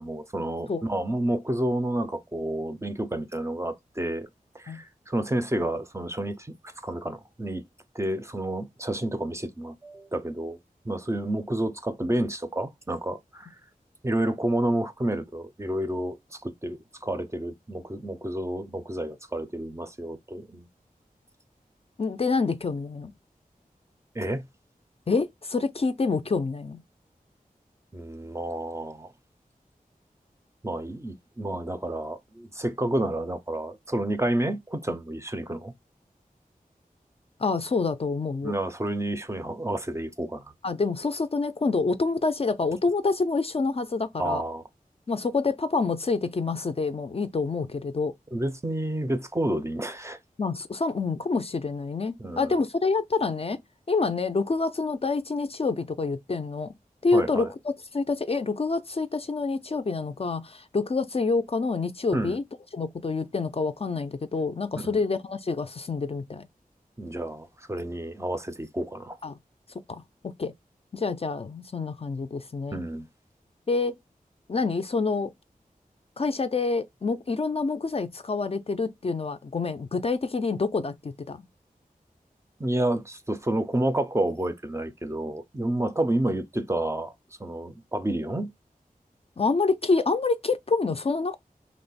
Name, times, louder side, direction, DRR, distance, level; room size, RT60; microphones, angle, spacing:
voice 1, 0.0-4.3 4.5-6.5 6.8-7.6 7.9-10.6 10.9-13.5 14.0-20.7 24.1-24.4 27.9-29.1 30.6-35.7 38.4-40.5 44.2-44.6 48.3-50.2 52.2-52.5 57.1-57.5 62.1-62.4 64.8-65.0 67.0-69.2 72.7-73.1 82.6-87.1 87.4-88.5, right 1 dB, 20° right, 0.4 m, -30 dB
voice 2, 22.0-23.1 25.1-26.8 37.4-38.5 40.6-44.4 45.1-48.1 50.4-53.6 53.9-56.7 57.0-57.5 57.9-62.4 62.7-66.5 69.2-69.4 69.9-70.0 70.4-70.5 70.9-72.8 73.7-74.0 74.5-75.3 76.2-81.5 89.4-91.4, left 4 dB, 40° left, 0.4 m, -27 dB
3.0 x 2.1 x 4.0 m
wide cardioid pair, 70°, 15 cm